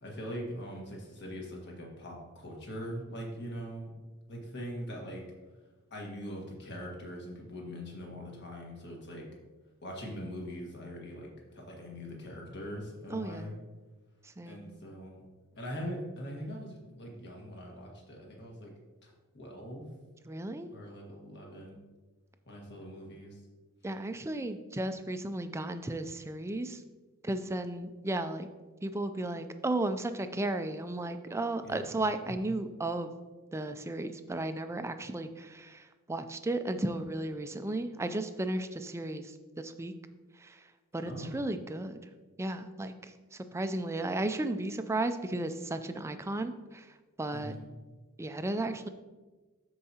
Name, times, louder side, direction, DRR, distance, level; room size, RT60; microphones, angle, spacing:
voice 1, 0.0-3.9 4.3-5.2 5.9-9.3 9.8-13.6 14.4-15.2 15.5-18.7 19.0-19.9 20.7-21.8 22.5-23.4 31.6-32.4 41.0-41.5 47.3-47.8, equal, 50° left, -1 dB, 1.7 m, -42 dB
voice 2, 13.1-13.6 14.4-14.7 20.3-20.7 23.8-26.8 27.2-28.5 28.8-33.1 33.5-35.8 36.1-39.9 40.4-40.6 40.9-42.0 42.4-42.9 43.5-46.9 47.2-47.5 48.2-48.9, right 2 dB, 10° right, 9 dB, 0.3 m, -34 dB
13.0 x 4.7 x 2.8 m, 1.3 s
head